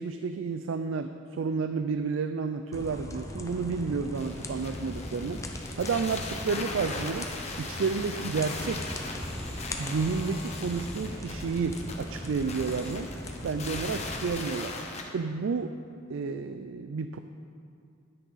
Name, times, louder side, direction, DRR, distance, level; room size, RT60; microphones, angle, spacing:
voice 1, 0.0-5.4 5.8-8.8 9.8-13.1 13.4-14.7 15.0-15.8 16.1-17.2, right 5 dB, 85° right, 9 dB, 0.4 m, -31 dB
sound 1, 2.7-14.3, left 1 dB, 15° left, 0.7 m, -39 dB
sound 2, 2.7-14.6, right 2 dB, 30° right, 0.7 m, -53 dB
sound 3, 4.2-15.0, left 3 dB, 35° left, 1.1 m, -39 dB
11.0 x 10.0 x 4.1 m, 2.5 s
head